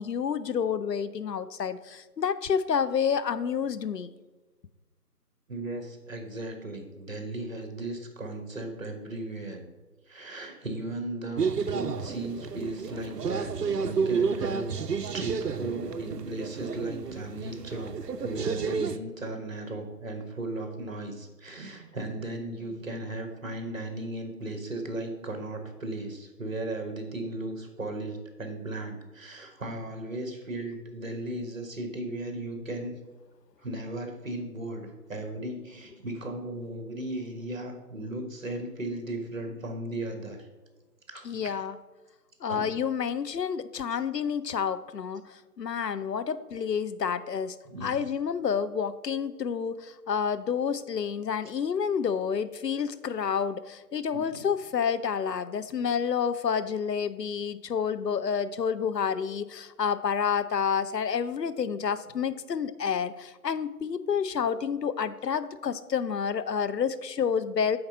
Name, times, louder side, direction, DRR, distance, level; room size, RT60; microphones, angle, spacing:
voice 1, 0.0-4.1 41.2-41.8 42.4-47.6 47.8-67.8, left 7 dB, 85° left, 14 dB, 0.7 m, -29 dB
voice 2, 5.5-9.6 10.1-14.7 15.1-18.0 18.2-32.9 33.6-40.5 41.1-41.5 42.5-42.7 47.6-48.0 54.1-54.4, right 2 dB, 55° right, 5 dB, 1.4 m, -36 dB
sound 1, 11.4-19.0, right 5 dB, 80° right, 0.7 m, -31 dB
8.6 x 4.0 x 5.4 m, 1.2 s
figure-of-eight pair, 170°, 48 cm